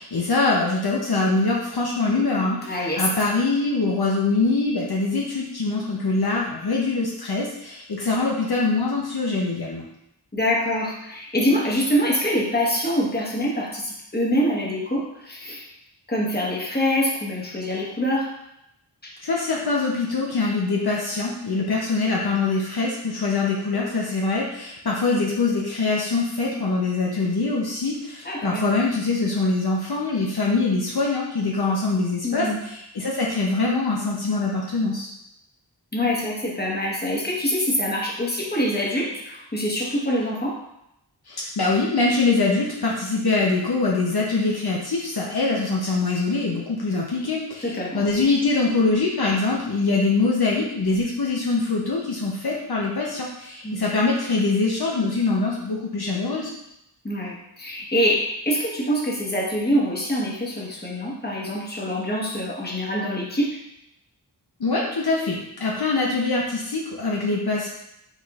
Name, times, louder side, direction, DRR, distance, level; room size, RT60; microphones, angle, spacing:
voice 1, 0.0-9.9 19.2-35.1 41.3-56.5 64.6-67.7, left 3 dB, 65° left, -3 dB, 0.7 m, -23 dB
voice 2, 2.6-3.0 10.3-15.6 16.1-18.3 19.0-19.1 28.2-28.7 32.2-32.6 35.9-40.6 47.6-48.0 53.6-53.8 57.0-63.6, equal, 25° left, -3 dB, 1.1 m, -25 dB
4.9 x 4.1 x 2.4 m, 0.83 s
wide cardioid pair, 45°, 41 cm